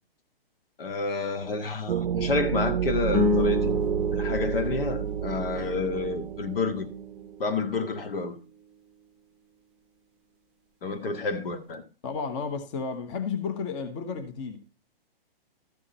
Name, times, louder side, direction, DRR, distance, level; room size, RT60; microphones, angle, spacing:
voice 1, 0.8-3.8 4.1-6.9 7.4-8.4 10.8-11.8, left 3 dB, 70° left, 1.9 m, -29 dB
sound 1, 1.9-7.3, right 9 dB, 65° right, 0.6 m, -30 dB
sound 2, 3.1-7.6, equal, 5° right, 0.8 m, -30 dB
voice 2, 12.0-14.6, left 5 dB, 30° left, 1.3 m, -32 dB
13.0 x 6.2 x 4.3 m
hypercardioid pair, 150°, 29 cm